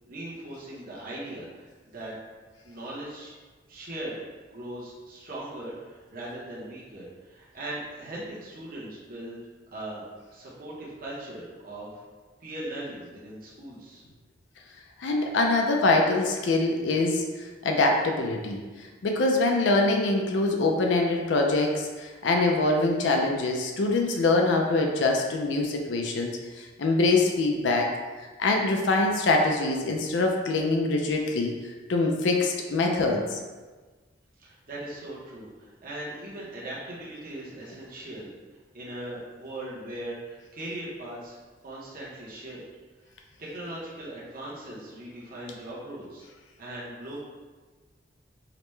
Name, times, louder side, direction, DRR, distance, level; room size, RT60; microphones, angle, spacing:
voice 1, 0.1-1.7 1.9-2.1 2.6-3.3 3.7-4.1 4.5-9.4 9.7-10.0 10.3-12.0 12.4-14.0 34.4-38.3 38.7-41.4 41.6-42.6 43.4-46.2 46.6-47.2, right 1 dB, 50° right, -6 dB, 0.8 m, -39 dB
voice 2, 15.0-27.9 28.4-31.5 31.9-33.4, left 2 dB, 70° left, 2 dB, 0.4 m, -24 dB
4.9 x 2.1 x 3.1 m, 1.3 s
head